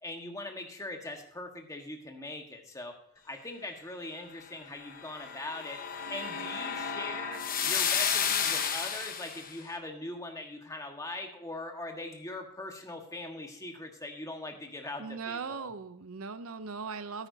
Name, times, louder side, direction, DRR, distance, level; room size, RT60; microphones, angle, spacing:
voice 1, 0.0-2.9 3.2-5.8 6.1-15.7, left 2 dB, 15° left, 3 dB, 1.4 m, -41 dB
sound 1, 4.9-9.5, left 7 dB, 40° left, 1.1 m, -32 dB
voice 2, 15.0-17.3, right 5 dB, 70° right, 13 dB, 0.6 m, -39 dB
13.0 x 10.0 x 2.7 m, 0.73 s
head